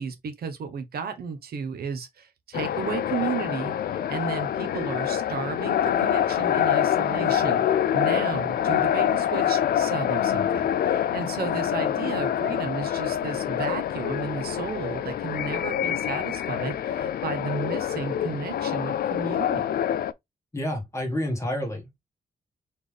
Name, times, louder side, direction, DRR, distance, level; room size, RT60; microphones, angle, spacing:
voice 1, 0.0-19.7, right 6 dB, 75° right, 0.9 m, -33 dB
sound 1, 2.5-20.1, left 10 dB, 75° left, 0.4 m, -26 dB
voice 2, 20.5-22.0, left 1 dB, 20° left, 1.6 m, -29 dB
4.3 x 3.5 x 3.2 m
wide cardioid pair, 150°, 16 cm